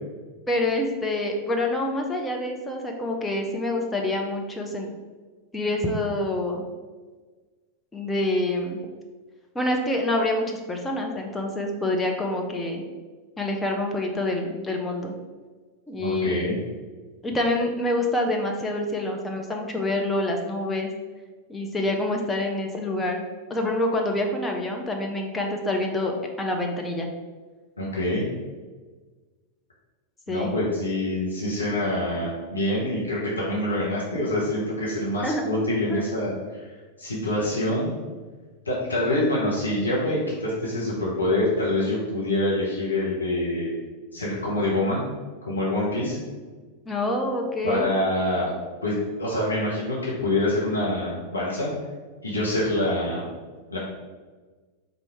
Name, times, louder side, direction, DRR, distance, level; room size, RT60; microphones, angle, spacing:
voice 1, 0.5-4.9 5.5-6.7 7.9-8.8 9.5-12.8 13.4-15.1 15.9-16.5 17.2-20.9 21.5-23.2 23.5-26.1 26.4-27.1 30.3-30.6 35.2-35.5 35.9-36.0 46.9-47.9, left 1 dB, 10° left, 1 dB, 0.5 m, -26 dB
voice 2, 16.0-16.5 27.8-28.2 30.3-36.7 37.0-37.9 38.6-43.7 44.1-45.0 45.4-46.2 47.6-48.5 48.8-51.7 52.2-53.2 53.7-53.8, left 1 dB, 80° left, -6 dB, 1.0 m, -26 dB
4.4 x 2.6 x 4.4 m, 1.4 s
figure-of-eight pair, 90°, 0 cm